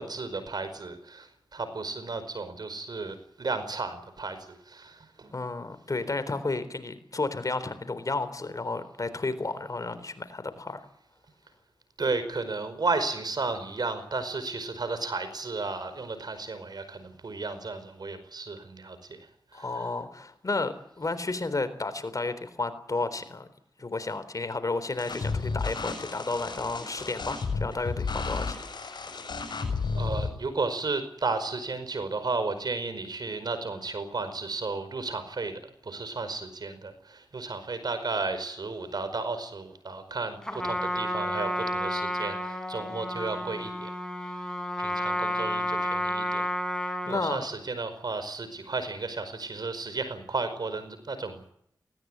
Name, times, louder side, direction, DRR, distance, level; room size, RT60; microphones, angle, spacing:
voice 1, 0.0-5.3 12.0-19.2 19.5-19.9 30.0-43.9 44.8-46.5 47.1-51.5, right 3 dB, 70° right, 11 dB, 5.1 m, -33 dB
voice 2, 5.3-10.8 19.5-23.5 23.8-28.6 47.1-47.4, left 3 dB, 50° left, 11 dB, 3.8 m, -32 dB
sound 1, 25.0-30.3, left 4 dB, 85° left, 6.8 m, -32 dB
Trumpet, 40.4-47.3, equal, 10° left, 5.4 m, -31 dB
19.5 x 18.5 x 9.5 m, 0.70 s
cardioid pair, 45°, 7 cm